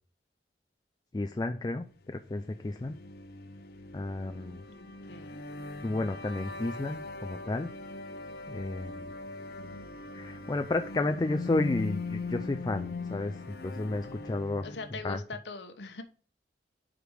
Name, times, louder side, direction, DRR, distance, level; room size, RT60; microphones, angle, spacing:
voice 1, 1.1-3.0 3.9-4.6 5.8-7.7 8.5-9.1 10.1-14.7 15.0-15.2, left 2 dB, 25° left, 0.4 m, -32 dB
sound 1, 2.1-15.1, left 3 dB, 60° left, 0.6 m, -41 dB
voice 2, 4.7-5.4 14.6-16.0, left 3 dB, 80° left, 1.0 m, -42 dB
5.0 x 5.0 x 6.2 m
head